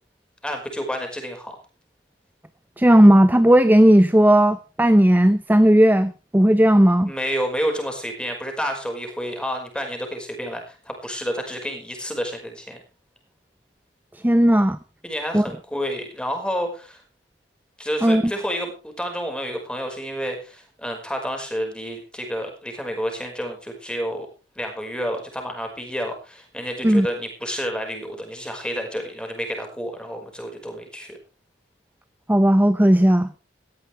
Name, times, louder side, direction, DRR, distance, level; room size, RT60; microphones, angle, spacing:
voice 1, 0.4-1.6 7.1-12.8 15.0-17.0 17.8-24.3 24.6-31.2, equal, 5° left, 5.4 m, -29 dB
voice 2, 2.8-7.1 14.2-14.8 15.3-15.5 18.0-18.2 26.8-27.1 32.3-33.3, right 1 dB, 10° right, 0.7 m, -15 dB
17.5 x 15.5 x 3.5 m
head